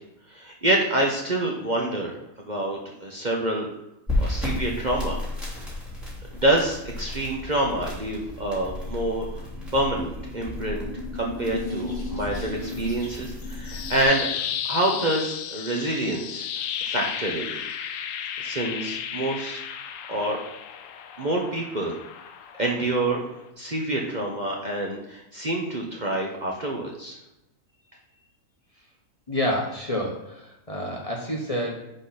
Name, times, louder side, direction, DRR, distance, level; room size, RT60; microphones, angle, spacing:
voice 1, 0.3-3.7 4.2-5.2 5.5-5.8 6.3-9.5 9.7-14.3 14.7-16.5 16.8-17.6 18.4-19.6 20.1-20.4 21.2-22.0 22.6-23.2 23.6-27.2, right 1 dB, 35° right, -1 dB, 1.1 m, -27 dB
sound 1, 4.1-14.0, left 1 dB, ahead, 3.1 m, -33 dB
sound 2, 9.1-14.6, left 2 dB, 50° left, 3.0 m, -37 dB
sound 3, 13.4-23.5, left 8 dB, 70° left, 1.0 m, -34 dB
voice 2, 29.3-31.9, left 1 dB, 25° left, -2 dB, 1.2 m, -28 dB
10.5 x 4.1 x 4.2 m, 0.86 s
omnidirectional pair, 1.5 m